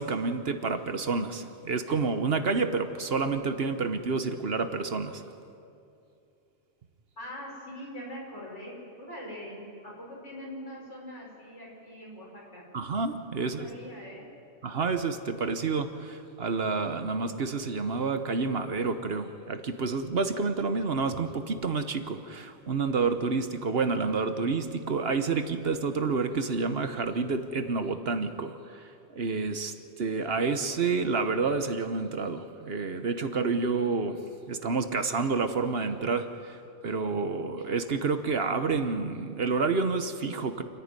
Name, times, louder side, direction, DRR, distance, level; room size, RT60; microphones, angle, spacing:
voice 1, 0.0-5.2 12.7-13.7 14.6-34.2 34.5-36.6 36.8-40.6, right 4 dB, 55° right, 8 dB, 1.2 m, -29 dB
voice 2, 7.2-12.7 13.4-14.3, equal, 75° left, -4 dB, 6.1 m, -42 dB
28.0 x 10.5 x 9.7 m, 2.6 s
omnidirectional pair, 1.2 m